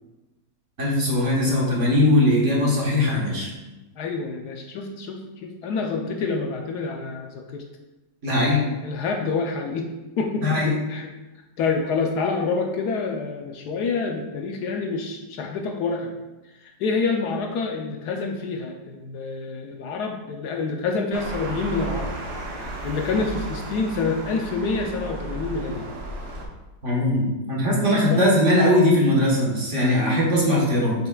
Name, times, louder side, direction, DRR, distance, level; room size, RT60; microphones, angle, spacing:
voice 1, 0.8-3.5 8.2-8.7 10.4-10.8 26.8-30.9, left 1 dB, 45° right, -4 dB, 1.5 m, -20 dB
voice 2, 4.0-7.6 8.8-9.9 10.2-11.1 11.6-16.1 16.6-22.1 22.8-25.9 27.9-28.3, left 4 dB, 70° left, 3 dB, 1.1 m, -27 dB
sound 1, 21.1-26.5, right 2 dB, 65° right, 1.5 m, -34 dB
7.4 x 5.8 x 2.3 m, 1.1 s
omnidirectional pair, 1.9 m